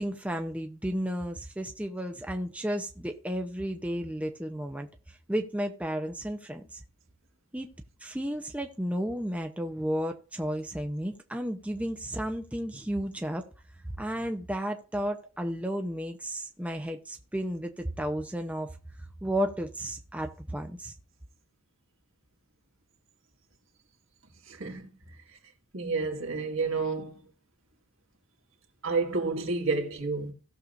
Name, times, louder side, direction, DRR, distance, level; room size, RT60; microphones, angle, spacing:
voice 1, 0.0-6.8 7.5-7.7 8.0-13.4 14.0-18.7 19.2-20.9, equal, 5° right, 0.6 m, -33 dB
voice 2, 25.7-27.1 28.8-30.3, right 4 dB, 70° right, 1.9 m, -29 dB
17.5 x 6.6 x 2.5 m
head